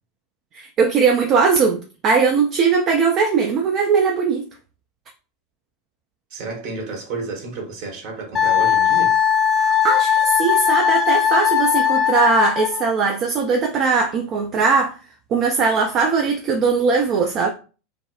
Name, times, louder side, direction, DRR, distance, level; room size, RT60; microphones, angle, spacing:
voice 1, 0.5-4.4 9.6-14.9 15.3-17.5, right 5 dB, 40° right, 0.4 m, -19 dB
voice 2, 6.3-9.2, right 3 dB, 55° right, 1.2 m, -31 dB
Wind instrument woodwind instrument, 8.3-12.8, left 9 dB, 20° left, 0.7 m, -18 dB
3.3 x 2.0 x 2.3 m
figure-of-eight pair, 80°, 0 cm